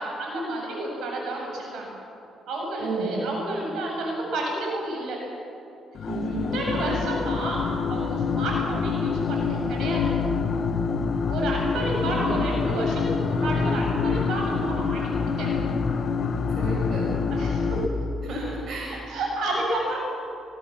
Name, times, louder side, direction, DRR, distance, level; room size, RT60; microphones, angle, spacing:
voice 1, 0.0-1.9 2.5-5.2 6.5-7.6 7.9-10.1 11.3-15.5 17.3-17.8 18.9-20.0, right 1 dB, 80° right, -1 dB, 7.6 m, -30 dB
voice 2, 2.8-3.1 6.1-6.4 12.0-12.4 16.6-17.0 18.2-18.9, right 3 dB, 65° right, -4 dB, 6.3 m, -32 dB
sound 1, 6.0-17.9, left 5 dB, 50° left, 1.5 m, -26 dB
25.5 x 18.0 x 7.4 m, 2.7 s
cardioid pair, 90°, 0 cm